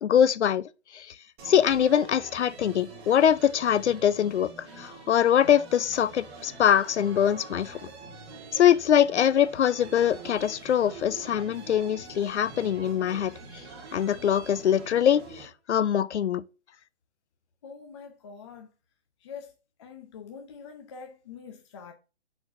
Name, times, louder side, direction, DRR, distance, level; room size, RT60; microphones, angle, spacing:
voice 1, 0.0-0.6 0.9-1.1 1.4-7.8 8.5-13.3 13.9-16.4, left 9 dB, 90° left, 0.5 m, -23 dB
sound 1, 1.4-15.5, right 3 dB, 25° right, 1.5 m, -45 dB
voice 2, 17.6-18.7 19.2-19.5 19.8-21.9, left 6 dB, 25° left, 0.6 m, -44 dB
9.9 x 4.4 x 2.6 m
hypercardioid pair, 150°, 33 cm